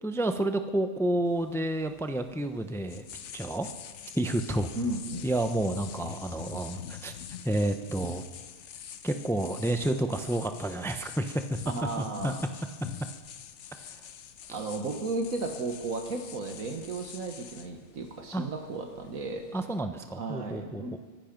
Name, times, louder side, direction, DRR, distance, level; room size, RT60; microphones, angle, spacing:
voice 1, 0.0-3.0 3.3-3.7 4.1-4.7 5.2-7.1 7.4-8.2 9.0-11.6 12.0-12.3 14.5-14.6 18.3-18.4 19.5-21.0, right 1 dB, 5° left, 8 dB, 0.4 m, -30 dB
sound 1, 1.3-19.7, left 8 dB, 60° left, 1.0 m, -45 dB
voice 2, 4.7-5.3 11.7-12.4 14.5-19.5 20.2-21.0, right 3 dB, 75° right, 3 dB, 1.7 m, -34 dB
23.5 x 11.5 x 5.2 m, 1.4 s
omnidirectional pair, 1.4 m